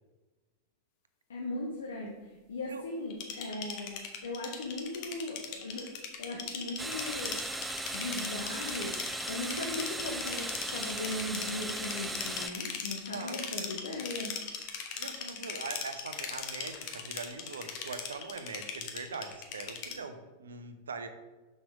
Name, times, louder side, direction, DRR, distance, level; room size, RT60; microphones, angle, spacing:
voice 1, 1.3-5.9 6.2-7.4 7.9-9.0 9.3-14.3, left 2 dB, 65° left, 0 dB, 0.9 m, -38 dB
sound 1, 3.1-20.0, left 7 dB, 45° left, 0.9 m, -39 dB
sound 2, 6.8-12.5, right 2 dB, 5° right, 0.4 m, -37 dB
voice 2, 13.1-13.5 15.0-21.1, right 4 dB, 70° right, 8 dB, 0.7 m, -42 dB
6.0 x 5.3 x 4.7 m, 1.2 s
figure-of-eight pair, 90°, 0 cm